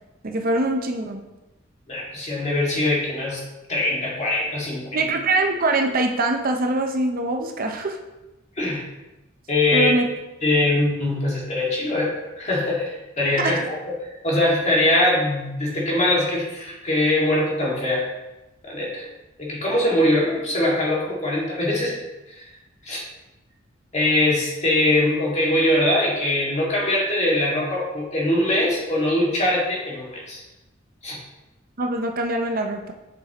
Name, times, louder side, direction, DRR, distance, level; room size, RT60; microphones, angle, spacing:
voice 1, 0.2-1.2 4.9-8.0 9.7-10.1 13.4-13.6 31.8-32.9, right 2 dB, 50° right, 4 dB, 0.7 m, -23 dB
voice 2, 1.9-3.4 3.7-4.8 8.6-8.8 9.5-9.9 10.4-13.6 14.0-18.0 18.6-19.0 19.4-22.0 22.3-22.4 22.9-23.0 23.9-30.4 31.0-31.2, left 1 dB, 35° left, -4 dB, 2.1 m, -22 dB
7.4 x 6.2 x 3.0 m, 1.0 s
head